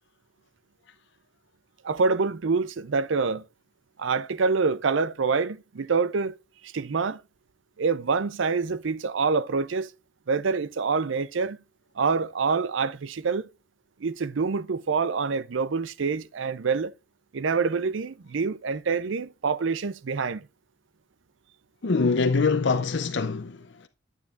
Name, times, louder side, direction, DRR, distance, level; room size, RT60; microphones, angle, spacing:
voice 1, 1.8-3.5 4.0-6.4 6.6-7.2 7.8-9.9 10.3-11.6 12.0-13.5 14.0-16.9 17.3-20.5, right 4 dB, 75° right, 0.5 m, -26 dB
voice 2, 21.8-23.9, left 4 dB, 60° left, 0.6 m, -24 dB
9.5 x 9.3 x 2.4 m
head